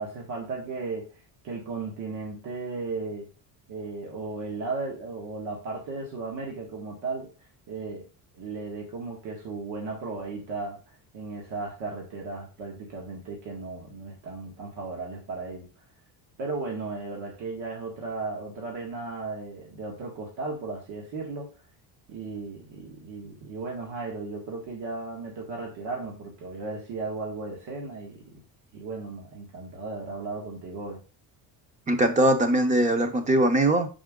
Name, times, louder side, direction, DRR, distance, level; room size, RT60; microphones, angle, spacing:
voice 1, 0.0-3.3 3.7-7.3 7.7-8.1 8.3-15.7 16.4-21.5 22.1-28.4 28.7-31.0, right 3 dB, 70° right, -1 dB, 1.8 m, -35 dB
voice 2, 31.9-33.9, right 1 dB, 15° right, 8 dB, 0.7 m, -21 dB
6.1 x 5.0 x 3.7 m, 0.33 s
cardioid pair, 170°, 43 cm